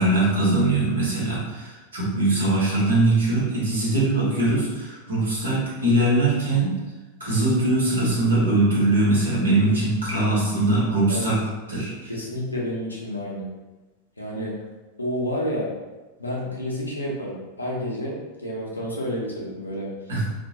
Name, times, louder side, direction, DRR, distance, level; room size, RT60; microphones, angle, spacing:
voice 1, 0.0-6.7 7.2-11.4 11.7-12.1 20.1-20.2, right 2 dB, 70° right, -6 dB, 1.0 m, -21 dB
voice 2, 12.1-13.5 14.2-14.6 15.0-15.7 16.2-19.9, equal, 80° left, -4 dB, 0.6 m, -30 dB
2.2 x 2.1 x 2.7 m, 1.1 s
figure-of-eight pair, 90°, 0 cm